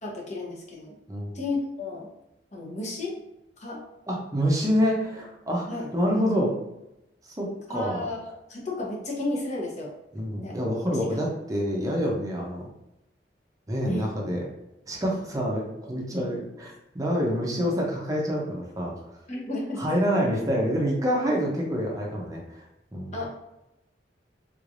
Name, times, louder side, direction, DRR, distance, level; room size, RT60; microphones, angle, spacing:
voice 1, 0.0-1.0 1.3-2.1 2.5-3.2 3.6-3.8 5.7-5.9 7.7-8.2 8.5-9.9 10.4-10.6 10.9-11.0 13.9-14.1 19.3-20.0 23.1-23.3, left 2 dB, 40° left, -2 dB, 0.9 m, -32 dB
voice 2, 4.1-6.5 7.4-8.0 10.1-12.7 13.7-14.4 14.9-19.0 19.8-22.6 22.9-23.2, equal, 20° right, -1 dB, 0.6 m, -27 dB
3.6 x 3.2 x 2.5 m, 0.89 s
head